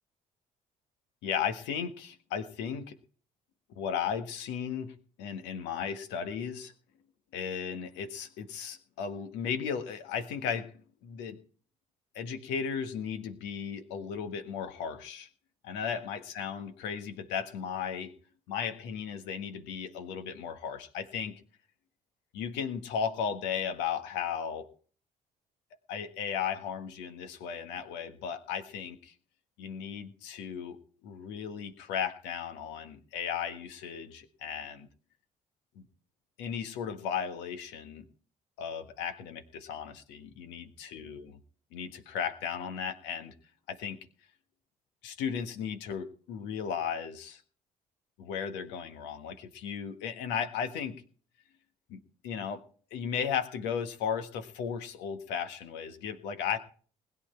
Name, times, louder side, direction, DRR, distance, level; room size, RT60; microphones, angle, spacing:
voice 1, 1.2-2.9 3.8-6.7 7.3-10.7 11.0-11.4 12.1-15.3 15.6-18.1 18.5-21.4 22.3-24.7 25.9-29.1 29.6-34.9 35.7-35.8 36.4-38.1 38.6-41.4 41.7-43.3 43.7-44.0 45.0-47.4 48.2-50.9 51.9-52.6 52.9-56.6, left 7 dB, 70° left, 9 dB, 1.5 m, -35 dB
20.5 x 9.5 x 4.5 m, 0.42 s
figure-of-eight pair, 50°, 19 cm